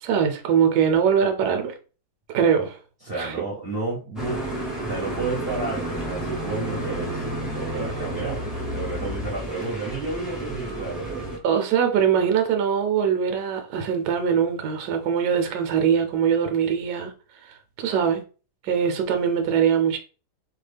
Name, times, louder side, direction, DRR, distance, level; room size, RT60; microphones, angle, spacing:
voice 1, 0.0-1.7 2.3-2.8 3.2-3.3 11.4-17.1 17.4-18.2 18.6-20.0, right 7 dB, 75° right, 1.1 m, -22 dB
voice 2, 3.0-4.4 4.8-8.4 8.7-11.3, right 3 dB, 50° right, 0.7 m, -31 dB
sound 1, 4.2-11.4, right 1 dB, ahead, 0.4 m, -31 dB
2.8 x 2.4 x 3.2 m
omnidirectional pair, 1.8 m